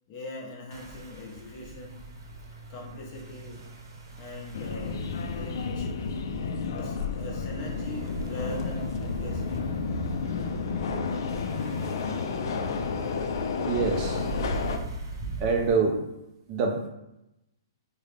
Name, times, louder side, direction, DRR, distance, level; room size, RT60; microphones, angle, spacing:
voice 1, 0.1-2.1 2.7-3.6 4.2-5.9 6.7-9.7, left 2 dB, 30° left, -2 dB, 0.9 m, -41 dB
sound 1, 0.7-15.7, right 2 dB, 75° right, 0.9 m, -41 dB
Subway metro underground, 4.5-14.8, left 4 dB, 60° left, 0.4 m, -31 dB
voice 2, 13.7-14.3 15.4-16.0 16.5-16.9, right 4 dB, 30° right, 1 dB, 0.4 m, -25 dB
3.5 x 2.1 x 3.2 m, 0.88 s
hypercardioid pair, 160°, 2 cm